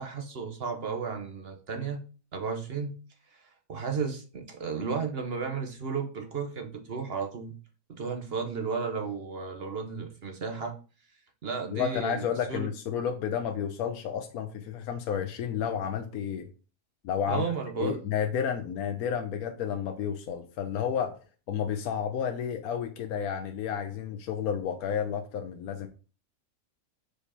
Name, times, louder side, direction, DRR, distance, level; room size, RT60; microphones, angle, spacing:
voice 1, 0.0-2.0 2.3-2.9 3.3-3.4 3.7-7.6 7.9-10.8 11.4-12.7 17.3-18.0, right 5 dB, 45° right, 5 dB, 1.1 m, -33 dB
voice 2, 11.7-16.5 17.0-17.5 17.8-21.2 21.5-25.9, left 8 dB, 80° left, 5 dB, 1.2 m, -31 dB
5.2 x 4.9 x 4.2 m, 0.35 s
omnidirectional pair, 1.5 m